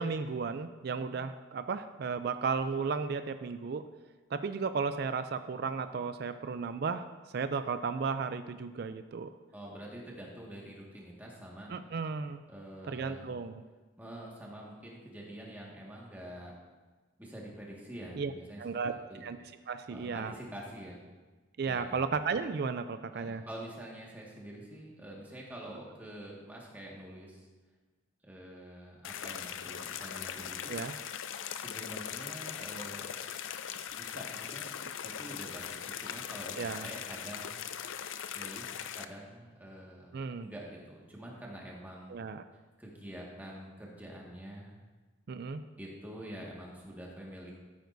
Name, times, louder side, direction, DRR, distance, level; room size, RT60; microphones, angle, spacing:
voice 1, 0.0-3.9 4.3-7.1 7.3-9.3 11.7-12.4 12.9-13.6 18.1-18.3 18.6-18.9 19.2-19.4 19.7-20.3 21.6-23.4 30.7-30.9 36.5-36.9 40.1-40.5 42.1-42.4 45.3-45.6, right 5 dB, 55° right, 10 dB, 0.4 m, -34 dB
voice 2, 9.5-11.7 12.5-13.3 14.0-16.5 17.2-18.6 18.9-19.2 19.9-21.0 21.6-22.0 23.1-27.5 28.2-30.9 31.5-33.2 34.0-34.8 35.0-37.6 38.3-40.1 40.4-42.1 42.8-44.7 45.8-47.5, right 1 dB, 10° right, -3 dB, 1.8 m, -46 dB
sound 1, 29.0-39.0, left 8 dB, 80° left, 0.5 m, -40 dB
14.0 x 9.3 x 2.7 m, 1.3 s
head